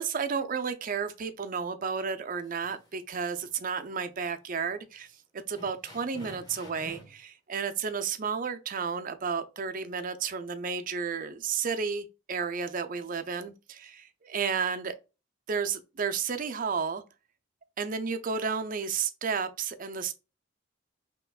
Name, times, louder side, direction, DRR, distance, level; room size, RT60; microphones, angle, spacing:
voice 1, 0.0-5.1 5.3-15.0 15.5-17.0 17.8-20.1, right 6 dB, 40° right, 0.5 m, -32 dB
sound 1, 2.4-3.1 3.4-3.6 4.2-4.3 4.7-4.8 5.5-7.2, right 1 dB, 20° left, 1.6 m, -48 dB
5.7 x 3.0 x 2.4 m
head